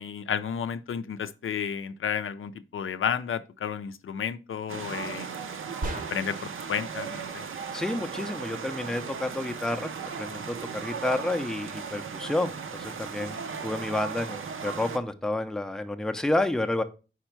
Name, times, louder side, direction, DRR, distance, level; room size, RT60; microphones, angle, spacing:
voice 1, 0.0-5.3 6.1-7.4, left 7 dB, 80° left, 0.4 m, -32 dB
sound 1, 4.7-15.0, right 6 dB, 75° right, 0.6 m, -37 dB
sound 2, 5.8-6.5, right 1 dB, 40° right, 0.8 m, -35 dB
voice 2, 7.7-9.9 10.2-10.6 10.8-16.8, left 2 dB, 5° left, 0.4 m, -30 dB
5.0 x 4.4 x 4.4 m
wide cardioid pair, 145°, 21 cm